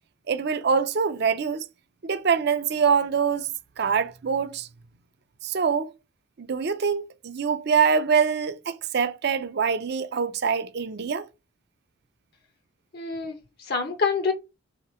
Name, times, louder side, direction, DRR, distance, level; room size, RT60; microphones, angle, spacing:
voice 1, 0.3-1.6 2.0-3.5 3.8-4.7 5.4-5.9 6.4-11.3, right 6 dB, 50° right, 0.4 m, -24 dB
voice 2, 12.9-14.3, left 4 dB, 50° left, 0.5 m, -27 dB
3.0 x 2.9 x 4.2 m
head